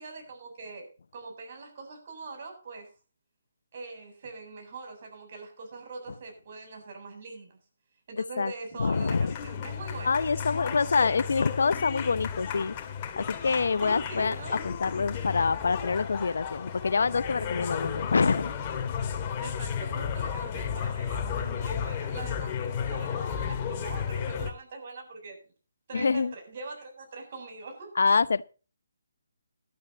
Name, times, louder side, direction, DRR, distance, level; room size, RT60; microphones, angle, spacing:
voice 1, 0.0-2.9 3.7-7.6 8.1-10.2 13.8-14.6 19.4-25.4 25.9-28.0, right 3 dB, 45° right, 7.7 m, -42 dB
voice 2, 8.8-9.3 10.0-12.7 13.2-14.4 14.6-18.5 25.9-26.3 28.0-28.5, left 4 dB, 70° left, 0.7 m, -26 dB
sound 1, 8.9-24.5, left 7 dB, 25° left, 2.3 m, -33 dB
18.5 x 12.0 x 2.8 m
hypercardioid pair, 155°, 0 cm